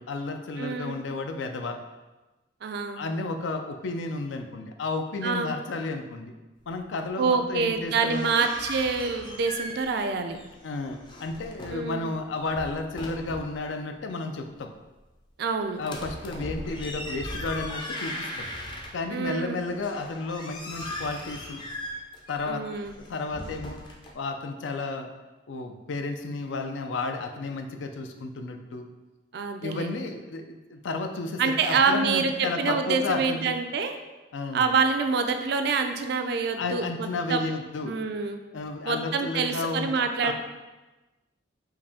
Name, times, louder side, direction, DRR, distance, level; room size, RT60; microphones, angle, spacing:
voice 1, 0.0-1.8 3.0-6.3 6.7-8.5 10.6-14.7 15.8-18.5 18.9-21.6 22.3-22.6 23.0-23.8 24.1-25.1 25.5-28.9 29.6-33.5 34.3-34.7 36.6-38.0 38.5-39.9 40.2-40.3, left 3 dB, 80° left, 6 dB, 0.4 m, -32 dB
voice 2, 0.6-1.0 2.6-3.0 5.2-5.5 7.2-10.4 11.7-12.1 15.4-15.8 19.1-19.6 22.5-22.9 29.3-30.0 31.4-34.0 34.5-37.4 37.8-38.4 38.8-40.3, right 5 dB, 60° right, 6 dB, 0.4 m, -26 dB
sound 1, 7.8-10.1 10.3-11.9 12.4-13.6 15.8-19.2 19.7-24.1, left 1 dB, 25° left, 0.5 m, -38 dB
4.7 x 2.7 x 3.5 m, 1.1 s
head